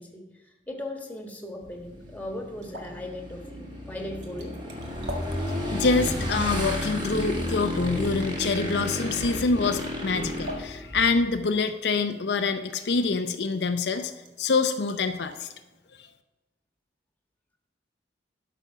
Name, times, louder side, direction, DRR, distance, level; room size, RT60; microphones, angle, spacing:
voice 1, 0.0-4.6, left 1 dB, 10° left, 3 dB, 1.5 m, -38 dB
sound 1, 1.0-15.4, equal, 65° right, 1.8 m, -48 dB
Motorcycle / Engine, 1.6-11.3, equal, 25° right, 2.0 m, -32 dB
voice 2, 5.5-14.1 14.4-15.5, left 4 dB, 65° left, 7 dB, 0.6 m, -26 dB
12.0 x 6.0 x 5.8 m, 1.2 s
head